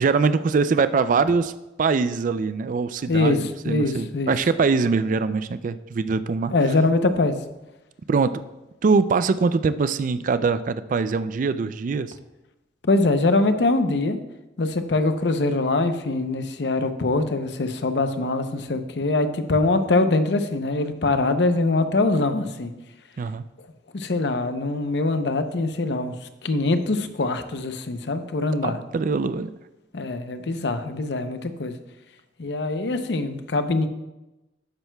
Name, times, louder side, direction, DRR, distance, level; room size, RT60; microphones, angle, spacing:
voice 1, 0.0-1.5 1.8-6.5 8.1-8.4 8.8-12.1 23.2-23.4 28.6-29.5, right 4 dB, 50° right, 13 dB, 0.3 m, -23 dB
voice 2, 3.1-4.3 6.5-7.4 12.8-14.2 14.6-22.7 23.9-26.1 26.4-28.8 29.9-31.8 32.4-33.9, left 2 dB, 75° left, 9 dB, 0.7 m, -23 dB
12.0 x 9.1 x 2.3 m, 1.0 s
head